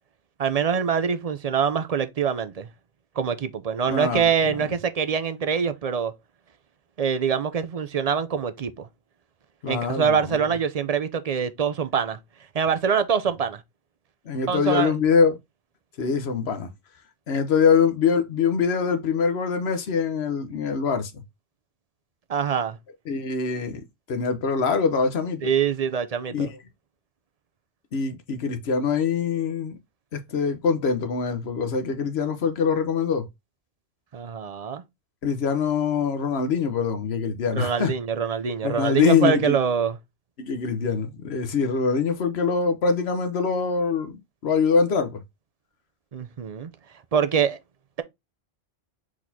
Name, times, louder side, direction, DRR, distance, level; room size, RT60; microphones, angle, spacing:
voice 1, 0.4-2.7 3.2-6.1 7.0-8.9 9.7-12.2 12.5-13.6 14.5-14.9 22.3-22.8 25.4-26.5 34.1-34.8 37.5-40.0 46.1-46.7 47.1-47.6, right 7 dB, 45° right, 0.6 m, -24 dB
voice 2, 3.9-4.6 9.6-10.4 14.2-15.4 16.0-16.7 17.3-21.1 23.1-23.8 24.1-25.4 26.3-26.6 27.9-29.8 30.1-33.3 35.2-37.9 38.6-39.6 40.4-45.2, left 5 dB, 75° left, 1.2 m, -24 dB
4.7 x 4.0 x 2.7 m
omnidirectional pair, 1.1 m